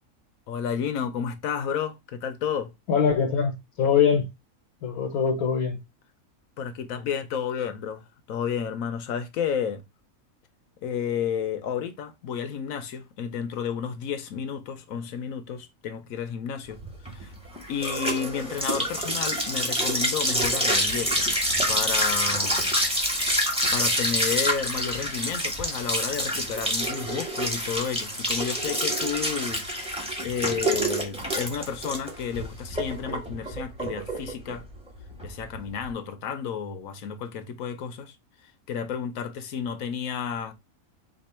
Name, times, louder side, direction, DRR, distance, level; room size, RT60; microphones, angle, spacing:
voice 1, 0.5-2.7 6.6-9.8 10.8-16.8 17.1-17.3 17.7-21.3 21.7-22.6 23.7-34.6 35.2-38.2 38.4-40.5, left 7 dB, 75° left, 1.1 m, -31 dB
voice 2, 2.9-4.3 4.8-5.8, left 7 dB, 90° left, 1.4 m, -23 dB
sound 1, 16.8-35.9, equal, 5° right, 1.2 m, -27 dB
4.4 x 2.8 x 4.2 m
omnidirectional pair, 1.5 m